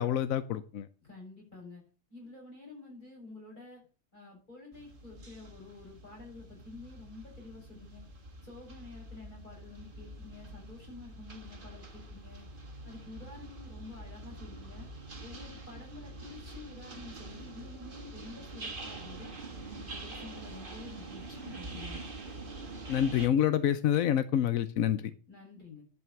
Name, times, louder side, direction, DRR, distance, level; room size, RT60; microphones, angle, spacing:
voice 1, 0.0-0.9 22.9-25.1, left 10 dB, 90° left, 13 dB, 1.1 m, -27 dB
voice 2, 1.0-1.8 2.1-3.8 4.1-8.0 8.4-12.5 12.8-14.9 15.2-19.3 19.7-22.0 25.3-25.8, left 3 dB, 35° left, -2 dB, 6.7 m, -49 dB
sound 1, 4.7-23.3, right 2 dB, 40° right, 1.8 m, -45 dB
11.0 x 5.9 x 6.9 m, 0.36 s
omnidirectional pair, 1.4 m